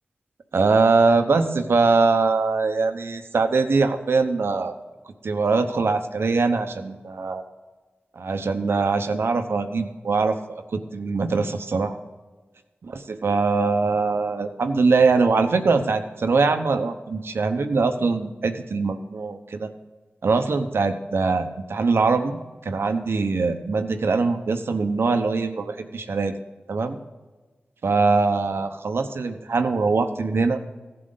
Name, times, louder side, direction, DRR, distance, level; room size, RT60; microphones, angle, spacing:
voice 1, 0.5-4.7 5.2-7.4 8.2-12.0 12.8-19.7 20.2-26.4 26.7-27.0 27.8-30.6, right 4 dB, 80° right, 8 dB, 0.9 m, -22 dB
15.5 x 7.7 x 4.0 m, 1.3 s
cardioid pair, 55°, 4 cm